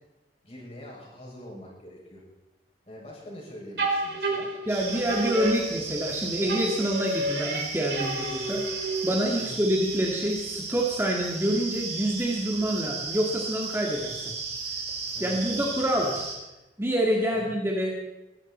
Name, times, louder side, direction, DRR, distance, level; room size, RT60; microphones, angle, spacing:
voice 1, 0.4-2.2 2.9-4.5 9.4-9.6 15.1-15.8 17.3-17.6, equal, 35° left, -4 dB, 6.8 m, -44 dB
sound 1, 3.8-6.1 6.5-9.3, right 2 dB, 75° right, 4.5 m, -30 dB
voice 2, 4.7-14.3 15.2-16.2 16.8-17.9, equal, 15° right, -1 dB, 1.9 m, -27 dB
sound 2, 4.7-16.3, right 4 dB, 35° right, 4.5 m, -35 dB
23.0 x 13.5 x 4.4 m, 1.0 s
head